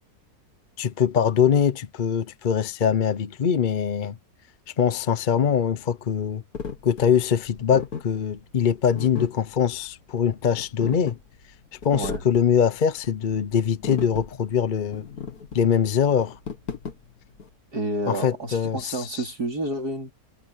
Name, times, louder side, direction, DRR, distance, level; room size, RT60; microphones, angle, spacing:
voice 1, 0.8-4.2 4.7-6.4 6.8-11.2 11.8-15.1 15.5-16.4 18.1-19.3, left 8 dB, 45° left, 0.6 m, -23 dB
sound 1, 6.5-17.5, left 5 dB, 70° left, 2.3 m, -36 dB
voice 2, 17.7-20.1, right 1 dB, 85° right, 4.8 m, -29 dB
omnidirectional pair, 1.6 m